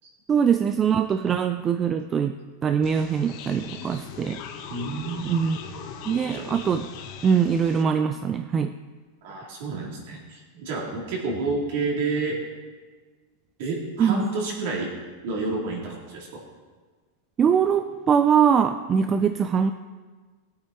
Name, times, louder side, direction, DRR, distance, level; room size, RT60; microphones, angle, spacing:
voice 1, 0.3-2.4 2.6-4.4 5.2-5.6 6.0-6.9 7.2-8.7 14.0-14.2 17.4-19.7, right 7 dB, 15° right, 8 dB, 0.3 m, -22 dB
sound 1, 2.8-7.8, left 7 dB, 35° left, 1.2 m, -40 dB
voice 2, 4.7-5.6 6.3-6.4 9.2-12.4 13.6-14.9 15.2-16.3, right 3 dB, 50° right, -2 dB, 3.7 m, -29 dB
20.0 x 8.6 x 4.5 m, 1.4 s
supercardioid pair, 180°, 0 cm